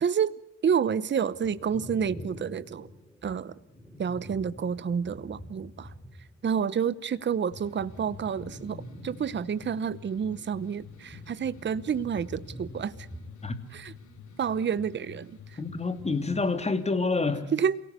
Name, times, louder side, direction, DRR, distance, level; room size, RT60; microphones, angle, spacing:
voice 1, 0.0-2.9 3.2-3.5 4.0-5.9 6.4-13.1 13.7-13.9 14.4-15.6 17.5-17.8, right 7 dB, 35° right, 17 dB, 0.9 m, -29 dB
sound 1, 1.3-6.6 6.9-15.5 15.8-16.5, equal, 5° left, 3.5 m, -47 dB
sound 2, 7.5-16.6, left 7 dB, 70° left, 3.5 m, -49 dB
voice 2, 15.6-17.5, left 3 dB, 20° left, 8 dB, 3.0 m, -27 dB
28.5 x 18.0 x 8.2 m, 0.81 s
cardioid pair, 90°, 30 cm